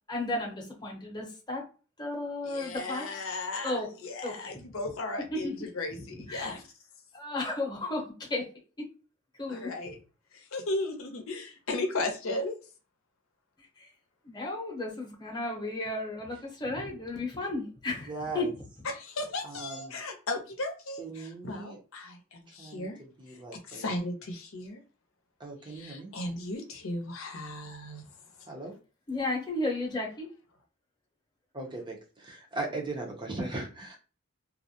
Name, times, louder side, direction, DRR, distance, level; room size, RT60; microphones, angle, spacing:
voice 1, 0.1-1.6 2.0-3.2 3.6-3.9 4.2-4.7 5.3-5.5 6.3-6.6 7.1-8.4 8.8-8.9 9.4-9.7 13.8-13.9 14.2-18.5 29.1-30.3, left 2 dB, 20° left, -1 dB, 0.8 m, -34 dB
voice 2, 2.4-6.6 9.5-10.0 10.3-12.6 18.8-23.0 23.3-23.4 23.7-24.8 25.6-28.0, left 2 dB, 80° left, 4 dB, 0.6 m, -36 dB
voice 3, 18.1-18.5 19.4-19.9 21.0-21.8 22.6-23.8 25.4-26.1 28.5-28.8 31.5-34.0, right 2 dB, 25° right, 1 dB, 0.6 m, -38 dB
2.4 x 2.1 x 2.7 m, 0.35 s
head